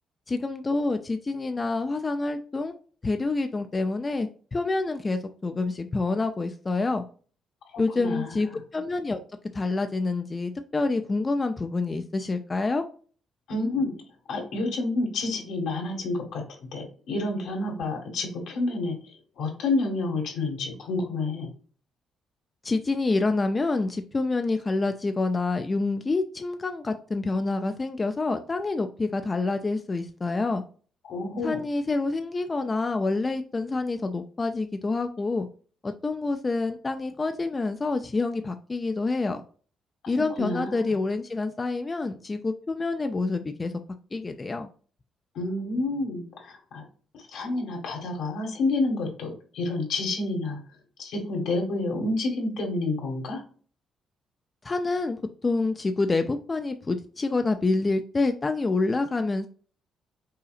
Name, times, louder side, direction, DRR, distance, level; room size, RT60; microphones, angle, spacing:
voice 1, 0.3-2.7 3.0-7.0 7.8-9.2 9.5-12.8 22.6-30.6 31.4-35.5 35.8-39.4 40.1-43.7 44.1-44.7 54.6-59.5, left 3 dB, 25° left, 7 dB, 0.4 m, -27 dB
voice 2, 7.7-8.6 13.5-14.0 14.3-16.4 16.7-21.5 31.0-31.6 40.0-40.1 40.4-40.9 45.3-46.8 47.3-50.6 51.0-53.4, left 2 dB, 80° left, 1 dB, 1.8 m, -29 dB
5.6 x 3.9 x 2.5 m, 0.41 s
cardioid pair, 90°, 0 cm